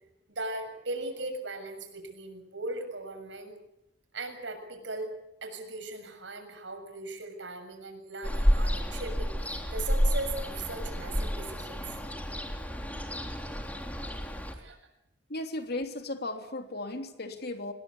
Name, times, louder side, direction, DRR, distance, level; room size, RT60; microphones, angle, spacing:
voice 1, 0.3-3.5 4.1-5.1 5.4-12.1 14.5-14.8, right 2 dB, 80° right, 7 dB, 7.0 m, -38 dB
Ocean, 8.2-14.5, equal, 10° left, 3.5 m, -30 dB
voice 2, 15.3-17.7, left 2 dB, 60° left, 6 dB, 3.3 m, -35 dB
27.0 x 21.0 x 8.6 m, 0.83 s
head